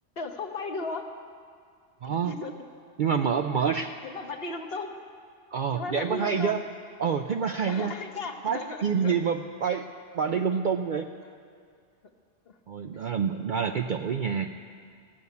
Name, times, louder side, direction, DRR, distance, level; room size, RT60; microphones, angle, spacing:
voice 1, 0.2-1.1 2.0-2.5 4.0-4.9 5.7-6.6 7.7-9.2 10.3-10.4 12.5-12.6 12.9-13.2, left 3 dB, 55° left, 5 dB, 1.1 m, -36 dB
voice 2, 2.0-2.3 3.0-4.0 5.5-6.6 7.0-7.9 8.4-9.9 10.1-11.1 12.7-14.5, right 6 dB, 60° right, 5 dB, 0.5 m, -27 dB
16.0 x 6.9 x 9.4 m, 2.1 s
omnidirectional pair, 1.3 m